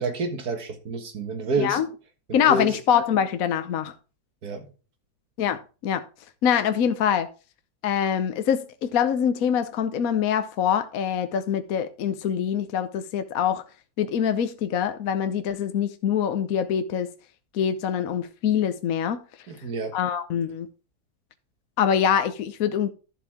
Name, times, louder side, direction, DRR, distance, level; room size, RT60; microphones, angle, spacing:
voice 1, 0.0-1.8 2.3-2.8 4.4-4.7 19.5-20.0, right 3 dB, 65° right, 2.2 m, -29 dB
voice 2, 2.3-3.9 5.4-6.0 6.4-7.3 7.8-13.6 14.0-17.1 17.5-19.2 19.9-20.7 21.8-22.9, left 8 dB, 65° left, 1.2 m, -24 dB
12.0 x 7.2 x 3.6 m
omnidirectional pair, 1.8 m